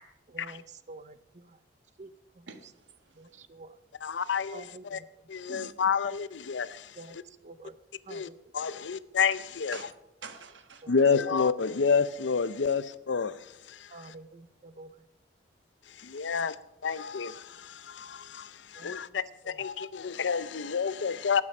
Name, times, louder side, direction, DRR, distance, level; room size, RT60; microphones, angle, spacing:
voice 1, 0.3-1.6 2.0-2.1 2.4-2.5 3.2-3.7 4.5-5.0 7.0-7.2 7.4-7.7 8.1-8.4 10.8-10.9 11.3-11.4 13.9-14.9 16.3-16.5 18.8-19.2 19.4-19.6, right 3 dB, 40° right, 14 dB, 0.7 m, -48 dB
voice 2, 2.5-3.4 5.5-5.7 9.7-9.8 10.2-10.9, right 5 dB, 75° right, 8 dB, 1.4 m, -46 dB
voice 3, 4.0-5.0 5.3-7.2 8.1-8.3 8.5-9.8 10.9-13.3 13.7-14.1 16.0-16.5 16.8-21.4, left 5 dB, 80° left, 16 dB, 0.6 m, -29 dB
19.0 x 8.6 x 5.4 m, 0.88 s
head